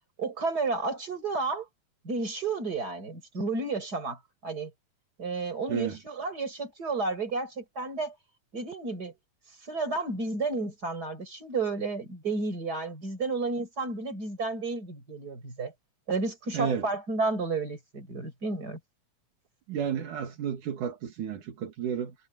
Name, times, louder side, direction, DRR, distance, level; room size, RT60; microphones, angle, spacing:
voice 1, 0.2-1.7 2.0-4.7 5.2-8.1 8.5-9.1 9.7-15.7 16.1-18.8, right 3 dB, 30° right, 6.1 m, -32 dB
voice 2, 16.5-16.9 19.7-22.1, right 8 dB, 80° right, 3.5 m, -31 dB
omnidirectional pair, 3.6 m